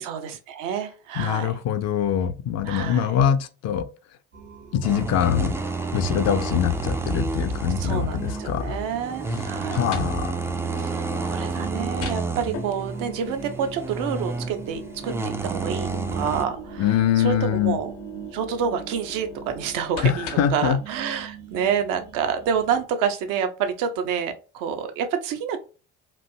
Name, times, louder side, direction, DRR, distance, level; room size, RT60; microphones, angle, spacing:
voice 1, 0.0-1.5 2.6-3.1 6.1-6.4 7.8-9.8 10.8-17.9 18.3-25.6, right 7 dB, 65° right, 0.7 m, -28 dB
voice 2, 1.2-3.9 4.7-5.6 5.9-8.8 9.3-10.3 16.8-17.8 20.0-20.8, left 8 dB, 50° left, 0.5 m, -23 dB
sound 1, 4.3-22.8, right 7 dB, 85° right, 1.3 m, -41 dB
Tony tuba engine with tappit noise and farts-, 4.8-16.4, right 3 dB, 10° right, 0.3 m, -30 dB
sound 2, 11.7-20.7, left 4 dB, 75° left, 0.9 m, -42 dB
3.1 x 2.5 x 2.6 m
hypercardioid pair, 50°, 35 cm